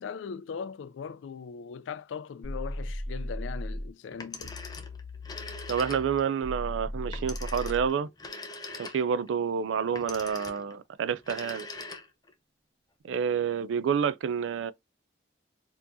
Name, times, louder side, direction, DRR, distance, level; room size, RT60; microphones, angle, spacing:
voice 1, 0.0-4.6, left 6 dB, 85° left, 0.4 m, -39 dB
sound 1, 2.4-3.9 4.4-7.9, left 1 dB, 20° right, 0.9 m, -37 dB
Telephone, 4.1-6.3 7.1-9.3 9.9-10.7 11.2-12.3, left 3 dB, 20° left, 0.6 m, -42 dB
voice 2, 5.7-8.1 8.8-11.7 13.0-14.7, right 7 dB, 90° right, 0.3 m, -28 dB
4.4 x 2.8 x 2.5 m
head